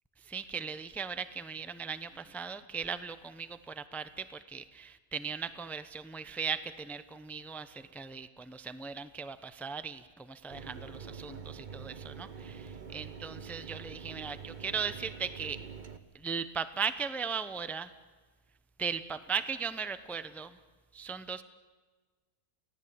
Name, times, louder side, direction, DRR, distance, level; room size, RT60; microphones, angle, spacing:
voice 1, 0.2-15.6 16.1-17.9 18.8-20.6 20.9-21.4, right 6 dB, ahead, 12 dB, 0.6 m, -38 dB
Mechanisms, 10.5-16.0, right 6 dB, 35° right, 1.1 m, -45 dB
29.5 x 18.0 x 8.8 m, 1.4 s
omnidirectional pair, 1.6 m